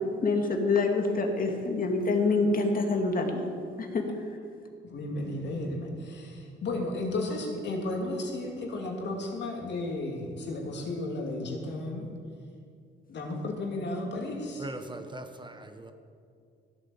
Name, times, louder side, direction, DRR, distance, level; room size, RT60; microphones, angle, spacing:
voice 1, 0.2-3.4 3.8-4.1, left 3 dB, 45° left, 2.3 m, -26 dB
voice 2, 4.9-12.1 13.1-14.7, left 2 dB, 60° left, 2.8 m, -33 dB
voice 3, 14.6-15.9, right 2 dB, 25° right, 1.1 m, -40 dB
15.5 x 9.1 x 7.2 m
cardioid pair, 90°, 20 cm